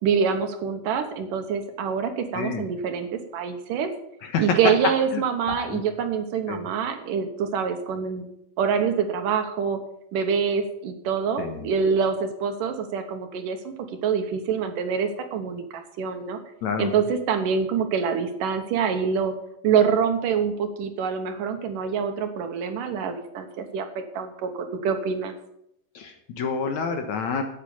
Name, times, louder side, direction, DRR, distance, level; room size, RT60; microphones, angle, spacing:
voice 1, 0.0-3.1 3.3-3.9 4.4-8.3 8.6-9.8 10.1-13.7 14.0-16.4 16.8-19.3 19.6-23.9 24.1-25.3, right 6 dB, 70° right, 6 dB, 2.6 m, -25 dB
voice 2, 5.5-5.8 6.5-6.6 11.4-11.7 16.6-16.9 25.9-27.4, left 5 dB, 65° left, 5 dB, 2.2 m, -29 dB
12.5 x 8.3 x 7.1 m, 0.77 s
omnidirectional pair, 4.1 m